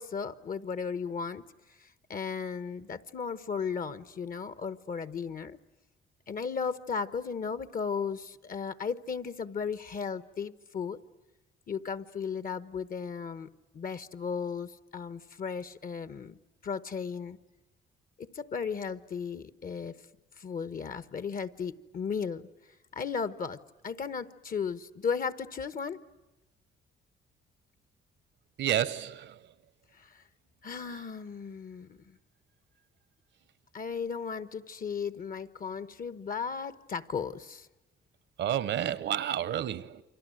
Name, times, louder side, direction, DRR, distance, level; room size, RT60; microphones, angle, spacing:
voice 1, 0.0-1.4 1.7-5.6 6.3-11.0 11.7-16.4 16.6-17.4 18.2-20.0 20.4-22.5 22.9-26.0 29.9-30.2 30.6-32.2 33.7-37.7, left 6 dB, 45° left, 1.2 m, -35 dB
voice 2, 28.6-29.4 38.4-40.0, right 10 dB, 65° right, 1.1 m, -30 dB
29.0 x 24.5 x 7.8 m
cardioid pair, 90°, 20 cm